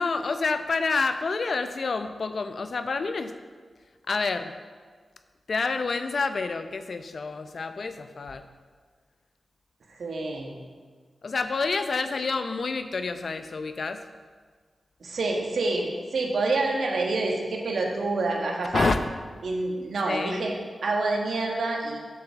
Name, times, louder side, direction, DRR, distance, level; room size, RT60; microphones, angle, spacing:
voice 1, 0.0-3.3 4.1-4.5 5.5-8.4 11.2-14.0 18.7-19.0 20.1-20.4, left 4 dB, 60° left, 9 dB, 0.6 m, -28 dB
voice 2, 10.0-10.6 15.0-18.9 19.4-20.5 20.8-22.0, right 2 dB, 80° right, 0 dB, 1.5 m, -27 dB
7.6 x 5.7 x 7.1 m, 1.5 s
cardioid pair, 70°, 0 cm